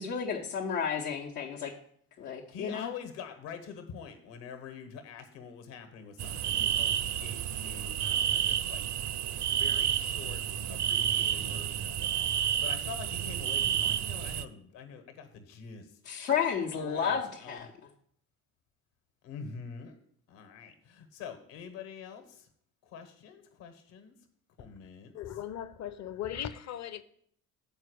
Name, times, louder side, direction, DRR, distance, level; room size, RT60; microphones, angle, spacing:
voice 1, 0.0-1.7 2.2-2.9 16.1-17.7, left 7 dB, 85° left, 1.0 m, -32 dB
voice 2, 2.5-8.8 9.4-16.0 16.7-17.7 19.2-20.0 20.3-22.5 22.8-24.1 24.6-25.2, left 6 dB, 65° left, 1.3 m, -46 dB
sound 1, 6.2-14.4, right 9 dB, 40° right, 0.5 m, -30 dB
voice 3, 25.1-27.0, left 10 dB, 35° left, 0.6 m, -38 dB
7.4 x 4.6 x 6.4 m
hypercardioid pair, 60°, 47 cm